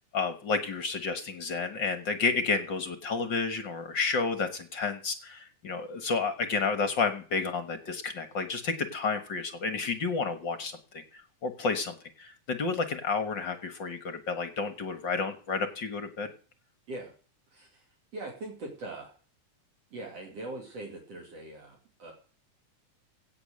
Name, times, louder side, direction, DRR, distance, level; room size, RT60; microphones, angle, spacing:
voice 1, 0.1-11.0 11.4-16.3, left 4 dB, 50° left, 9 dB, 1.5 m, -31 dB
voice 2, 17.5-17.9 18.1-19.1 19.9-22.1, right 2 dB, 50° right, 1 dB, 3.8 m, -41 dB
17.0 x 7.2 x 6.5 m, 0.41 s
omnidirectional pair, 3.6 m